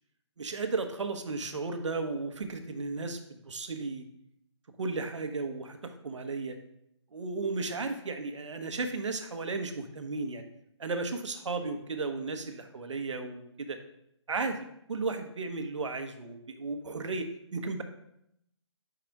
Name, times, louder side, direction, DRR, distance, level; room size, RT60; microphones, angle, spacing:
voice 1, 0.4-3.2 3.4-4.0 4.8-6.6 7.1-10.4 10.8-13.8 14.3-17.8, right 3 dB, 75° right, 7 dB, 1.0 m, -34 dB
5.1 x 4.8 x 4.5 m, 0.77 s
hypercardioid pair, 150°, 15 cm